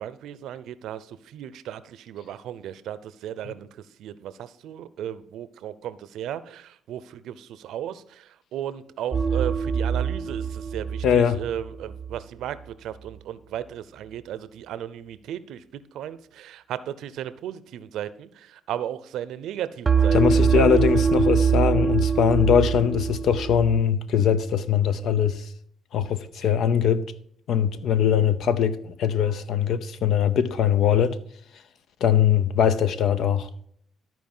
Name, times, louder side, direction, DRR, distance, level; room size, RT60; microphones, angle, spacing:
voice 1, 0.0-20.8, right 10 dB, 80° right, 0.6 m, -35 dB
sound 1, 9.1-12.2 19.9-23.8, right 6 dB, 30° right, 0.6 m, -23 dB
voice 2, 11.0-11.4 20.1-25.5 25.9-27.0 27.5-31.2 32.0-33.7, left 8 dB, 70° left, 0.7 m, -21 dB
13.0 x 4.6 x 5.5 m
cardioid pair, 80°, 0 cm